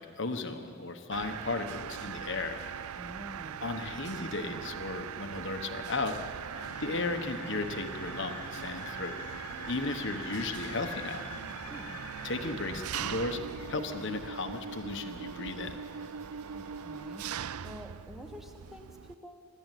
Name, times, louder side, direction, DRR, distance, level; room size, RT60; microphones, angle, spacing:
voice 1, 0.0-2.6 3.6-6.2 6.8-9.1 9.6-11.2 12.2-13.4 13.7-15.8, left 3 dB, 55° left, 6 dB, 1.3 m, -35 dB
Mechanisms, 1.1-19.1, right 8 dB, 80° right, 0.4 m, -41 dB
voice 2, 3.0-3.6 11.7-12.0 16.5-17.3 17.6-19.5, equal, ahead, 3 dB, 1.4 m, -47 dB
sound 1, 6.5-17.5, left 6 dB, 85° left, 0.8 m, -48 dB
25.0 x 12.5 x 9.2 m, 2.6 s
head